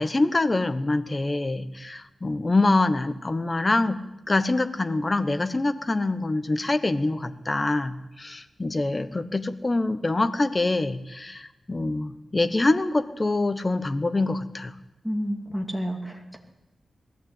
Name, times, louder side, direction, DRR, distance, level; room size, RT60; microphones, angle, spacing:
voice 1, 0.0-14.7, left 2 dB, 25° left, 10 dB, 1.1 m, -25 dB
voice 2, 15.0-16.4, equal, ahead, 2 dB, 2.7 m, -30 dB
20.0 x 15.0 x 9.0 m, 0.94 s
wide cardioid pair, 140°, 0 cm